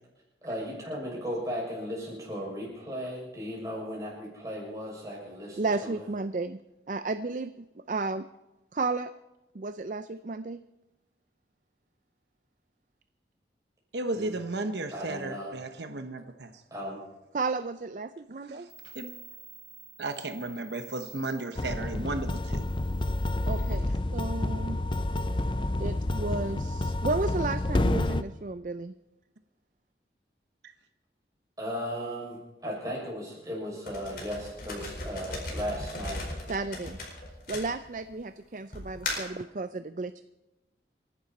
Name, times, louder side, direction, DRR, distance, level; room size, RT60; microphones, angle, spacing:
voice 1, 0.4-6.1 14.1-14.4 14.9-15.6 16.7-17.0 31.6-36.3, equal, 20° right, -3 dB, 6.4 m, -36 dB
voice 2, 5.6-6.6 6.9-7.5 7.9-8.2 8.7-9.1 9.5-10.6 17.3-18.7 23.5-24.8 25.8-28.9 36.5-37.0 37.5-40.2, right 3 dB, 45° right, 11 dB, 0.5 m, -33 dB
voice 3, 13.9-16.5 18.4-19.1 20.0-22.7, right 2 dB, 80° right, 7 dB, 1.0 m, -34 dB
sound 1, 18.7-23.8, right 4 dB, 10° left, 1.1 m, -50 dB
sound 2, 21.6-28.2, left 1 dB, 25° left, 0.6 m, -29 dB
sound 3, 33.9-38.2 38.7-39.4, left 2 dB, 55° left, 4.6 m, -37 dB
28.5 x 11.5 x 4.2 m, 1.0 s
head